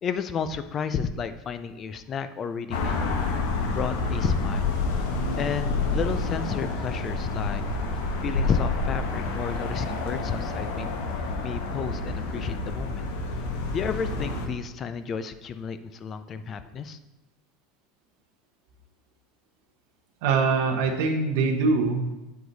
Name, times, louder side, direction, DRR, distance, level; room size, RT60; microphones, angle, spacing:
voice 1, 0.0-3.2 3.7-4.7 5.4-7.6 8.2-11.0 11.4-13.0 13.7-17.0, left 6 dB, 20° left, 11 dB, 0.3 m, -32 dB
sound 1, 2.7-14.5, left 3 dB, 80° left, 1.1 m, -28 dB
voice 2, 20.2-22.1, right 4 dB, 60° right, 1 dB, 0.9 m, -23 dB
8.1 x 4.7 x 4.0 m, 1.0 s
supercardioid pair, 180°, 0 cm